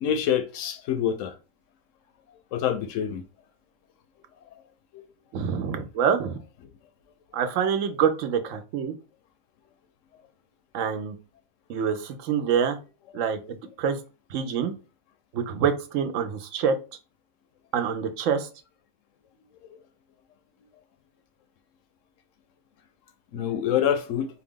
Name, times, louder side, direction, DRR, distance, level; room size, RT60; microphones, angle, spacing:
voice 1, 0.0-1.3 2.5-3.2 23.3-24.3, left 9 dB, 80° left, 0.9 m, -26 dB
voice 2, 5.3-6.3 7.3-8.9 10.7-11.1 11.7-12.8 13.1-13.4 13.8-14.0 14.3-14.7 15.3-16.7 17.7-18.5, right 7 dB, 80° right, 1.0 m, -26 dB
4.2 x 2.3 x 3.6 m
omnidirectional pair, 1.3 m